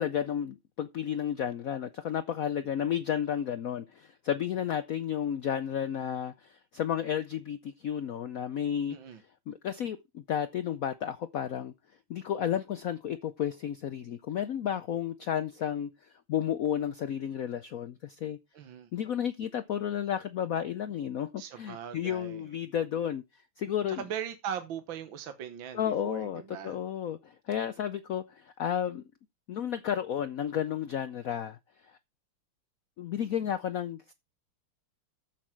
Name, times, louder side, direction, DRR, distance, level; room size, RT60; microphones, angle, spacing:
voice 1, 0.0-9.0 9.5-11.7 12.1-18.4 18.9-23.2 23.6-24.0 25.7-29.0 29.5-31.6 31.8-31.9 33.0-34.1, left 9 dB, 85° left, 0.7 m, -32 dB
voice 2, 8.9-9.2 18.5-18.9 21.4-22.5 24.0-26.8, right 8 dB, 65° right, 1.8 m, -39 dB
14.0 x 6.0 x 4.5 m
omnidirectional pair, 2.3 m